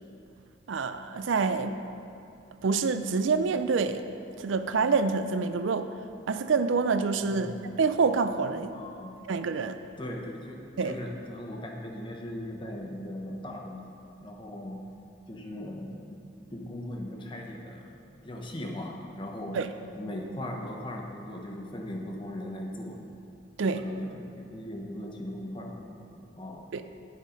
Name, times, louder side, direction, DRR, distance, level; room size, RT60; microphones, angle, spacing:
voice 1, 0.7-1.8 2.6-4.0 4.4-5.9 6.3-8.7 9.3-9.8 10.8-11.0 19.5-19.7 23.6-23.8 26.7-26.8, right 4 dB, 80° right, 10 dB, 0.5 m, -27 dB
voice 2, 8.7-9.2 10.0-14.8 15.3-16.2 16.5-19.6 20.0-23.0 23.6-26.1 26.3-26.6, left 1 dB, 25° left, 1 dB, 1.0 m, -39 dB
9.6 x 7.4 x 5.1 m, 2.6 s
head